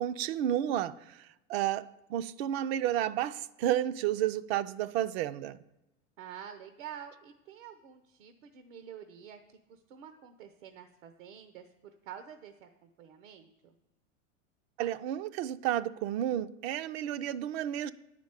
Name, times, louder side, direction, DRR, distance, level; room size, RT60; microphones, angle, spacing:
voice 1, 0.0-5.6 14.8-17.9, right 11 dB, 55° right, 0.5 m, -31 dB
voice 2, 6.2-13.7, right 9 dB, 75° right, 1.0 m, -48 dB
9.6 x 5.1 x 8.1 m
supercardioid pair, 130°, 38 cm